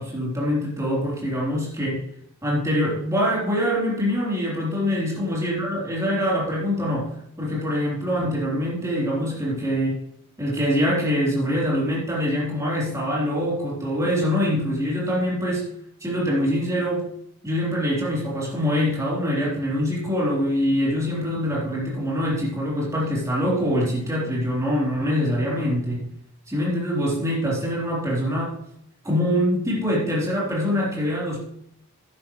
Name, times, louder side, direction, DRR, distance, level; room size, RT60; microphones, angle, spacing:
voice 1, 0.0-2.0 2.4-10.0 10.4-15.7 16.0-17.1 17.4-26.1 26.5-28.5 29.0-31.4, equal, 15° right, -5 dB, 3.2 m, -24 dB
11.5 x 9.8 x 3.0 m, 0.73 s
head